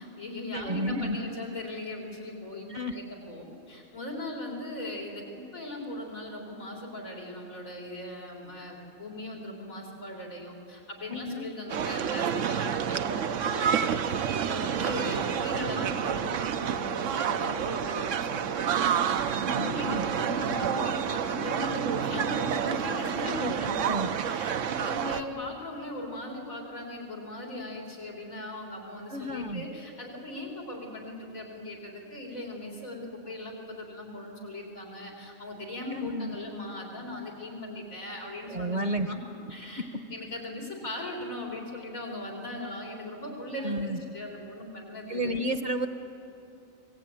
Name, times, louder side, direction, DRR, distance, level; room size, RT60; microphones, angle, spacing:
voice 1, 0.0-23.8 24.2-38.8 39.1-39.2 39.5-45.3, left 1 dB, 90° left, 0 dB, 4.4 m, -39 dB
voice 2, 0.5-1.2 2.7-3.0 11.1-11.5 19.5-20.0 23.4-23.5 23.9-24.1 29.1-29.6 35.9-36.3 38.5-39.1 39.6-39.9 43.6-44.0 45.1-45.9, equal, 40° right, 8 dB, 1.1 m, -31 dB
sound 1, 11.7-25.2, right 8 dB, 70° right, 1.1 m, -29 dB
25.5 x 18.5 x 9.0 m, 2.8 s
omnidirectional pair, 1.4 m